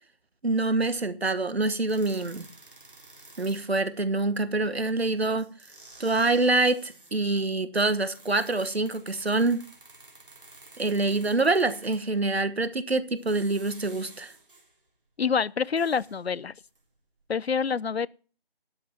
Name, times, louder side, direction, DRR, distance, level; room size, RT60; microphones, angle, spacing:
voice 1, 0.4-2.5 3.4-5.5 6.0-9.6 10.8-14.3, right 2 dB, 80° right, 1.4 m, -26 dB
sound 1, 1.9-3.9 5.0-5.1 5.4-7.2 7.9-12.2 13.0-14.8 15.2-16.9 17.2-17.3, right 2 dB, 55° right, 3.6 m, -52 dB
voice 2, 15.2-16.5 17.3-18.1, left 6 dB, 80° left, 0.6 m, -26 dB
12.5 x 6.0 x 7.1 m
figure-of-eight pair, 165°, 31 cm